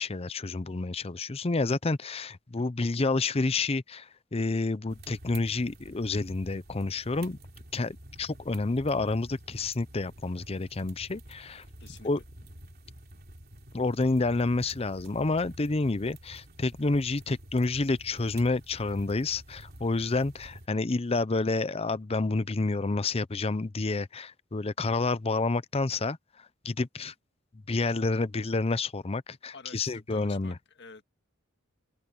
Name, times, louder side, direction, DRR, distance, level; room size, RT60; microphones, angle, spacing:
voice 1, 0.0-7.4 7.7-11.6 12.0-12.2 13.7-26.2 26.6-27.1 27.7-30.5, left 3 dB, 30° left, 0.6 m, -29 dB
sound 1, 4.9-20.7, right 1 dB, 50° right, 3.5 m, -49 dB
voice 2, 11.8-12.1 29.5-31.0, left 4 dB, 60° left, 1.8 m, -48 dB
open air
head